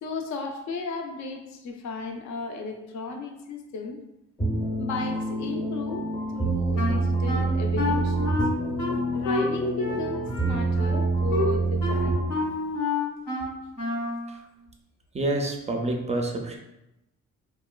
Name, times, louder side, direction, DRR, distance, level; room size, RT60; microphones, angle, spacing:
voice 1, 0.0-4.0 4.8-6.1 6.3-8.4 9.1-12.2, left 3 dB, 65° left, 4 dB, 0.5 m, -34 dB
sound 1, 4.4-12.5, right 2 dB, 15° left, 0.6 m, -27 dB
Wind instrument woodwind instrument, 6.8-14.3, left 2 dB, 90° left, 0.8 m, -30 dB
voice 2, 15.1-16.6, right 2 dB, 25° right, 2 dB, 0.3 m, -28 dB
2.8 x 2.2 x 2.2 m, 0.89 s
cardioid pair, 90°, 30 cm